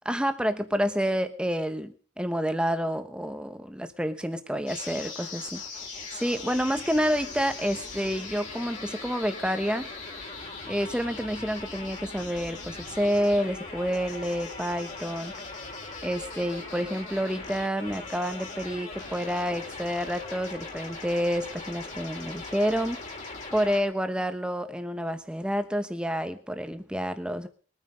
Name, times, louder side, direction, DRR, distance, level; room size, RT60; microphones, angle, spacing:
voice 1, 0.0-5.6 6.1-9.9 10.7-15.3 16.0-27.5, equal, 5° right, 9 dB, 1.0 m, -29 dB
sound 1, 4.7-23.8, left 3 dB, 35° left, 3.3 m, -40 dB
22.0 x 9.4 x 5.2 m, 0.42 s
head